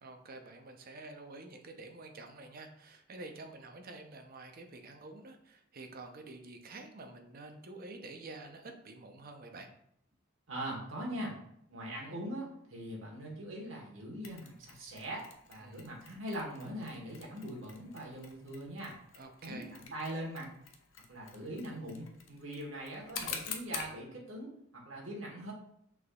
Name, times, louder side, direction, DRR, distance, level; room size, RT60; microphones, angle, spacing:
voice 1, 0.0-9.7 15.6-15.9 19.1-19.7, right 2 dB, 45° right, 5 dB, 0.6 m, -48 dB
voice 2, 10.5-11.3 11.7-15.2 15.5-18.9 19.4-20.5 21.1-25.5, right 1 dB, 70° right, -2 dB, 1.1 m, -41 dB
Mechanisms, 14.2-24.0, left 6 dB, 70° left, 0.6 m, -47 dB
6.0 x 3.4 x 2.3 m, 0.72 s
head